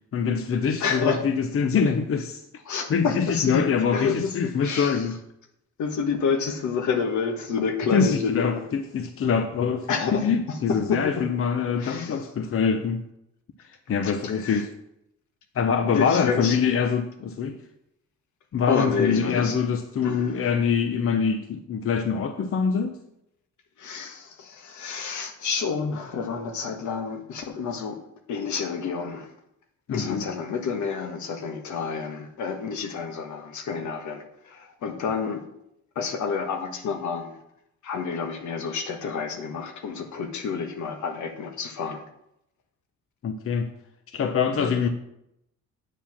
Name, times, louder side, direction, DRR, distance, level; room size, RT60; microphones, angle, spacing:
voice 1, 0.1-2.4 2.9-5.1 7.9-13.0 13.9-14.7 15.5-17.6 18.5-23.0 29.9-30.2 43.2-43.7 44.1-44.9, left 6 dB, 45° left, 8 dB, 0.8 m, -24 dB
voice 2, 0.8-1.2 2.6-4.3 4.6-5.1 5.8-8.6 9.9-11.2 11.8-12.1 14.0-14.6 15.9-16.6 18.7-19.6 20.0-20.4 23.8-28.0 28.3-29.3 29.9-35.4 35.9-37.4 37.8-42.0 44.5-44.9, left 5 dB, 75° left, 6 dB, 1.5 m, -29 dB
8.8 x 4.7 x 7.3 m, 0.79 s
cardioid pair, 90°, 30 cm